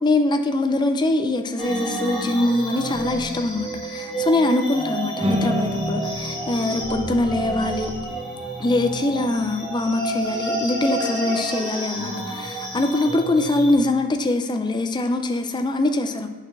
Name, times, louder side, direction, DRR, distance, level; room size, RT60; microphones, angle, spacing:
voice 1, 0.0-7.9 8.6-16.3, left 2 dB, 20° left, 6 dB, 0.4 m, -23 dB
sound 1, 1.6-13.8, right 2 dB, ahead, 1.9 m, -30 dB
sound 2, 5.2-11.5, equal, 25° right, 0.8 m, -32 dB
8.4 x 4.2 x 3.3 m, 1.5 s
head